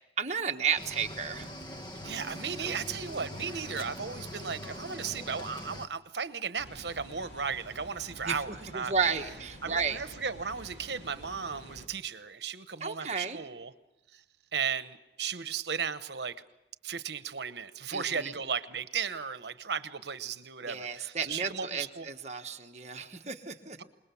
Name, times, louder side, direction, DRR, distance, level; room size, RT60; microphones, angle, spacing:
voice 1, 0.2-1.5 8.2-8.4 8.7-10.0 12.8-13.4 17.9-18.3 20.7-23.8, right 6 dB, 40° right, 4 dB, 1.3 m, -32 dB
Cricket / Waves surf, 0.8-5.9, left 1 dB, 25° left, 1.1 m, -42 dB
voice 2, 2.0-8.9 9.6-13.7 14.1-14.2 14.5-16.4 16.8-22.1, right 6 dB, 70° right, 12 dB, 1.0 m, -35 dB
Water, 6.6-11.9, equal, 90° left, 2.7 m, -49 dB
27.0 x 21.0 x 7.1 m, 1.0 s
head